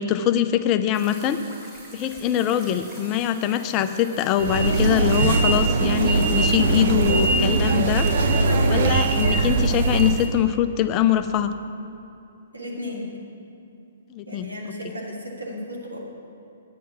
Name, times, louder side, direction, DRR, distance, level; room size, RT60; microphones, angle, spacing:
voice 1, 0.0-1.4 1.9-8.1 8.7-11.5 14.1-14.5, left 10 dB, 30° left, 10 dB, 0.5 m, -23 dB
sound 1, 0.9-10.3, right 1 dB, 10° right, 2.8 m, -44 dB
sound 2, 4.4-10.3, right 3 dB, 55° right, 0.8 m, -21 dB
voice 2, 12.5-13.1 14.3-16.0, left 1 dB, 90° right, -2 dB, 2.3 m, -34 dB
9.5 x 9.2 x 5.9 m, 2.7 s
figure-of-eight pair, 125°, 0 cm